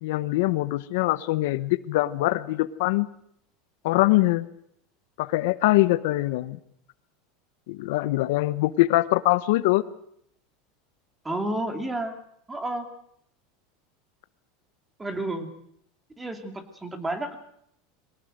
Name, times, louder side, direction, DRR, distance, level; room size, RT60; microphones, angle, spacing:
voice 1, 0.0-3.1 3.8-4.5 5.2-6.6 7.7-9.8, left 18 dB, 70° left, 15 dB, 0.9 m, -23 dB
voice 2, 11.2-12.2 12.5-12.9 15.0-15.5 16.2-17.4, right 1 dB, 10° right, 7 dB, 2.5 m, -31 dB
22.5 x 17.5 x 7.8 m, 0.70 s
supercardioid pair, 145°, 0 cm